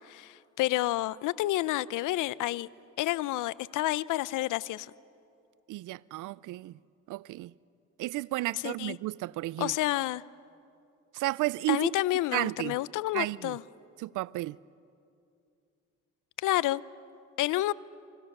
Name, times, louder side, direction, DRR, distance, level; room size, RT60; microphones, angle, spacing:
voice 1, 0.0-2.7 3.0-4.9 8.6-9.0 9.6-10.2 11.7-13.6 16.4-16.8 17.4-17.7, left 16 dB, 85° left, 0.6 m, -29 dB
voice 2, 5.7-6.8 7.1-7.5 8.0-9.7 11.1-11.9 12.3-12.8 13.1-13.6 14.0-14.6, right 18 dB, 85° right, 0.5 m, -32 dB
30.0 x 25.5 x 6.7 m
cardioid pair, 90°, 30 cm